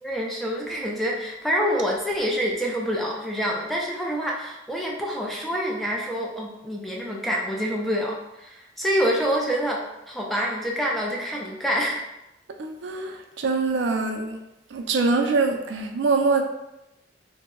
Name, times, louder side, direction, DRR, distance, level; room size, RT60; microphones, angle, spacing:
voice 1, 0.0-12.0, equal, ahead, 0.3 m, -27 dB
voice 2, 12.6-14.4 14.7-16.4, right 3 dB, 75° right, 0.4 m, -24 dB
2.6 x 2.0 x 3.6 m
head